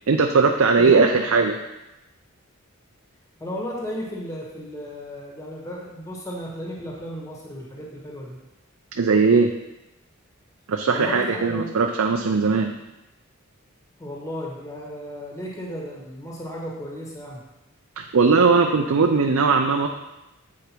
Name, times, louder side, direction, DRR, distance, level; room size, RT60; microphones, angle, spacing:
voice 1, 0.1-1.5 9.0-9.5 10.7-12.7 18.0-19.9, right 4 dB, 75° right, 3 dB, 0.5 m, -19 dB
voice 2, 0.8-1.2 3.4-8.4 10.9-11.7 14.0-17.4, equal, 15° left, -3 dB, 1.4 m, -34 dB
8.3 x 5.0 x 4.5 m, 0.96 s
head